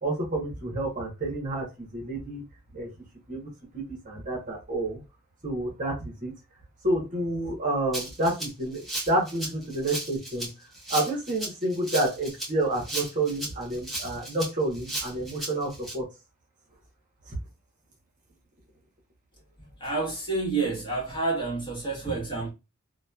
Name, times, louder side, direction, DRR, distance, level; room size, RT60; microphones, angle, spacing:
voice 1, 0.0-2.4 2.7-2.9 3.3-5.0 5.4-6.3 6.8-10.5 10.9-16.1 17.3-17.4, right 1 dB, 35° right, 1.0 m, -29 dB
Rattle (instrument), 7.9-15.9, right 1 dB, ahead, 0.8 m, -35 dB
voice 2, 19.6-22.5, right 3 dB, 20° left, 1.2 m, -29 dB
2.9 x 2.2 x 2.2 m
head